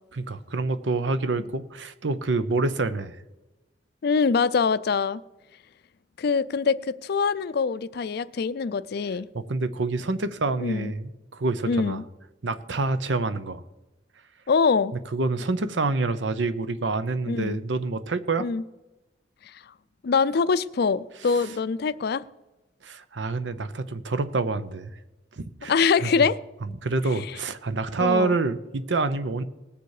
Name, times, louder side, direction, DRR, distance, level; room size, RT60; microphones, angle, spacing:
voice 1, 0.1-3.2 9.3-12.0 12.4-13.6 15.1-18.5 22.8-24.9 25.4-25.7 26.0-26.1 26.8-29.4, right 3 dB, 80° right, 12 dB, 0.8 m, -27 dB
voice 2, 4.0-5.2 6.2-9.3 10.6-10.9 11.7-12.0 14.5-14.9 17.3-17.6 18.4-18.6 20.0-22.2 25.7-26.4 28.0-28.3, left 5 dB, 60° left, 15 dB, 0.4 m, -24 dB
19.5 x 6.9 x 4.9 m, 1.1 s
head